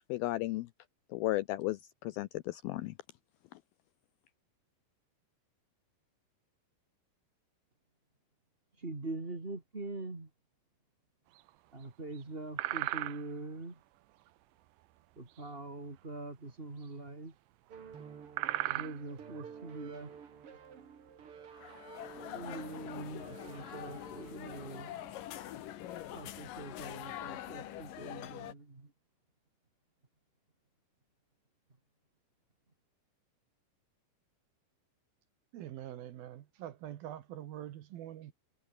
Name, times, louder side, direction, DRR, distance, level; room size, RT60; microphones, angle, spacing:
voice 1, 0.1-0.7 1.1-2.9, left 17 dB, 80° left, 2.2 m, -34 dB
voice 2, 8.8-10.3 11.7-13.8 15.2-17.3 18.7-20.1 22.3-25.0 26.1-28.9, right 2 dB, 20° right, 2.0 m, -43 dB
sound 1, 11.3-11.9 12.1-12.2 12.6-13.5 14.1-15.5 15.7-16.1 16.4-16.5 16.8-16.9 17.7-17.8 18.1-19.6 19.9-20.2 20.7-21.9 22.3-22.6 23.0-23.1 23.4-23.8 24.5-24.6 24.9-25.1, right 17 dB, 90° right, 3.3 m, -38 dB
sound 2, 17.7-25.2, right 7 dB, 40° right, 2.4 m, -51 dB
sound 3, 21.5-28.5, left 12 dB, 65° left, 2.6 m, -44 dB
voice 3, 35.5-38.3, right 12 dB, 65° right, 2.9 m, -45 dB
omnidirectional pair, 5.0 m